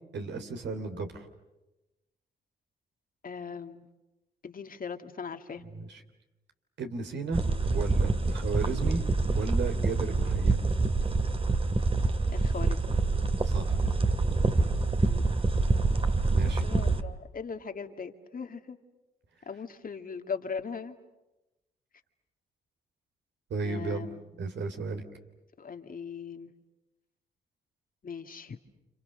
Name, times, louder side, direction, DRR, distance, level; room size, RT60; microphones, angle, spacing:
voice 1, 0.1-1.3 5.7-6.0 6.8-7.4 7.7-9.0 9.3-10.6 13.4-13.8 16.2-16.6 23.5-24.1 24.4-25.0, right 4 dB, 65° right, 6 dB, 3.3 m, -34 dB
voice 2, 3.2-3.9 4.4-5.6 12.3-12.9 15.0-15.3 16.6-18.8 19.5-21.0 23.6-24.2 25.6-26.5 28.0-28.6, left 6 dB, 45° left, 6 dB, 2.1 m, -39 dB
sound 1, 7.3-17.0, right 3 dB, 30° right, 2.1 m, -26 dB
30.0 x 27.5 x 6.7 m, 1.0 s
supercardioid pair, 50°, 19 cm